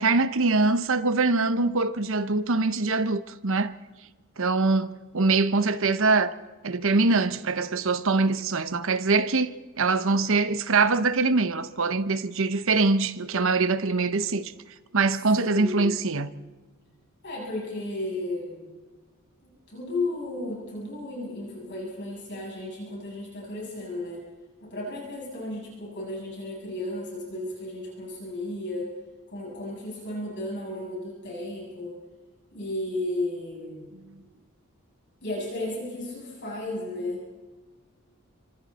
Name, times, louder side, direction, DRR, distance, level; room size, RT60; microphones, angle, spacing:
voice 1, 0.0-3.7 4.4-6.3 6.6-9.5 9.8-14.5 14.9-16.3, right 3 dB, 65° right, 0.9 m, -23 dB
voice 2, 15.3-15.9 17.2-18.7 19.4-24.2 24.6-28.9 29.3-31.9 32.5-33.9 35.2-37.2, left 1 dB, 55° left, 7.7 m, -34 dB
29.5 x 25.5 x 4.2 m
head